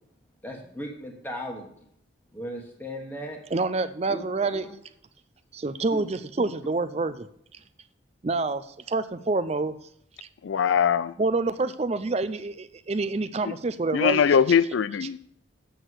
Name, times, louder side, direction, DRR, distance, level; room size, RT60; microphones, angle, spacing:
voice 1, 0.4-1.7 2.3-3.4 4.1-4.3 4.5-4.6 5.9-6.0, equal, 10° left, 0 dB, 1.3 m, -36 dB
voice 2, 3.5-4.7 5.5-7.3 8.2-9.7 11.2-14.2, right 3 dB, 30° right, 13 dB, 0.4 m, -27 dB
voice 3, 10.4-11.1 13.5-13.6 13.9-15.2, left 7 dB, 70° left, 17 dB, 0.4 m, -21 dB
7.9 x 6.5 x 7.9 m, 0.71 s
head